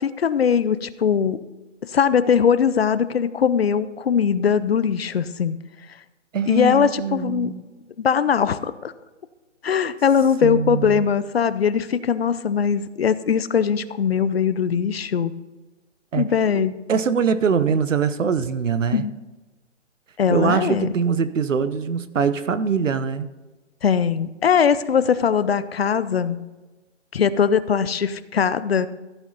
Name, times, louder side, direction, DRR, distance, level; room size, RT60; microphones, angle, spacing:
voice 1, 0.0-1.4 1.9-5.6 6.5-7.6 8.0-8.9 9.6-15.3 16.2-16.7 18.9-19.1 20.2-20.9 23.8-26.4 27.1-28.9, left 7 dB, 55° left, 15 dB, 0.6 m, -20 dB
voice 2, 6.3-7.6 10.4-11.1 16.1-16.2 16.9-19.0 20.3-23.3, right 6 dB, 90° right, 14 dB, 1.0 m, -23 dB
15.0 x 8.0 x 4.1 m, 1.2 s
hypercardioid pair, 170°, 37 cm